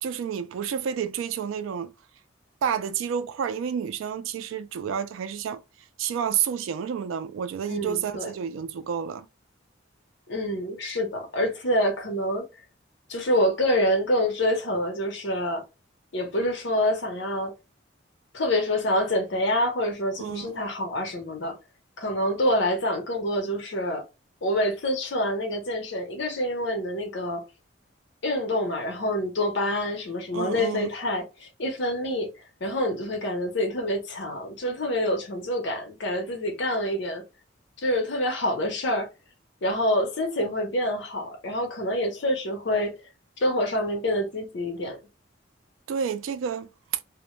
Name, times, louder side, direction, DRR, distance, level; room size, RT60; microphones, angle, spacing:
voice 1, 0.0-1.9 2.6-5.6 6.0-9.3 20.2-20.6 30.3-30.9 45.9-46.7, right 7 dB, 90° right, 0.3 m, -30 dB
voice 2, 7.7-8.3 10.3-12.5 13.1-15.6 16.1-17.5 18.3-21.6 22.0-24.0 24.4-27.4 28.2-32.3 32.6-37.2 37.8-39.1 39.6-42.9 43.4-45.0, left 1 dB, 65° left, 0.7 m, -26 dB
2.1 x 2.0 x 2.9 m
head